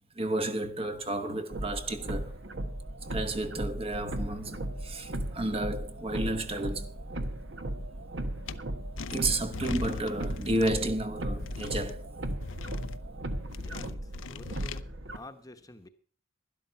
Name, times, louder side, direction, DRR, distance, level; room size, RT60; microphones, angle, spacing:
voice 1, 0.2-2.4 3.1-6.9 9.1-12.1, right 1 dB, 30° right, 1.0 m, -32 dB
sound 1, 1.5-15.2, right 1 dB, 65° right, 1.3 m, -36 dB
sound 2, 8.5-8.6 9.0-10.9 11.4-11.9 12.4-13.0 13.5-14.8, left 4 dB, 80° left, 0.6 m, -40 dB
voice 2, 13.6-15.9, left 2 dB, 20° left, 1.0 m, -50 dB
12.0 x 11.5 x 5.7 m
head